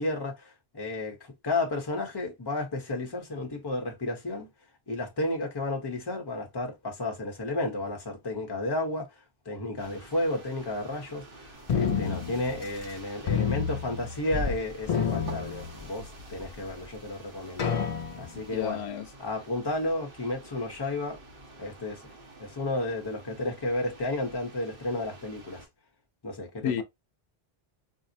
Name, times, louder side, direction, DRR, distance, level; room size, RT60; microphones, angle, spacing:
voice 1, 0.0-4.5 4.9-9.1 9.5-17.7 18.1-18.8 19.2-21.2 21.6-22.0 22.4-25.6 26.2-26.8, left 2 dB, 25° left, 0.8 m, -32 dB
sound 1, 9.8-25.7, right 2 dB, 60° right, 1.4 m, -49 dB
sound 2, 11.7-12.9 13.3-14.6 14.8-16.1 16.7-16.8 17.6-18.4, left 6 dB, 50° left, 0.5 m, -29 dB
voice 2, 18.3-19.1 26.6-26.8, left 9 dB, 90° left, 0.8 m, -31 dB
4.4 x 2.0 x 2.6 m
omnidirectional pair, 1.1 m